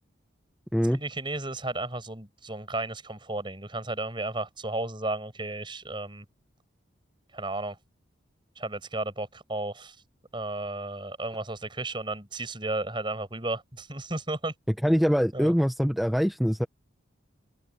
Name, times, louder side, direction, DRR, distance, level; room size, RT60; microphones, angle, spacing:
voice 1, 0.9-6.2 7.3-7.8 8.6-10.0 10.3-14.5 15.3-15.5, right 2 dB, 25° right, 5.7 m, -33 dB
voice 2, 14.8-16.7, equal, ahead, 0.5 m, -23 dB
open air
head